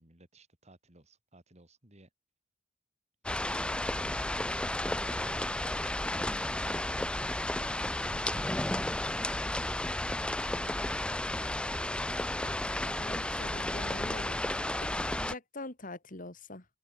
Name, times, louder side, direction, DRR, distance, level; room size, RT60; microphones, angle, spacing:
voice 1, 0.0-2.1 4.7-6.9, right 1 dB, 35° right, 4.7 m, -58 dB
sound 1, 3.2-15.3, left 1 dB, 5° left, 0.3 m, -33 dB
voice 2, 13.0-14.4 14.8-16.7, left 2 dB, 45° left, 3.0 m, -44 dB
open air
head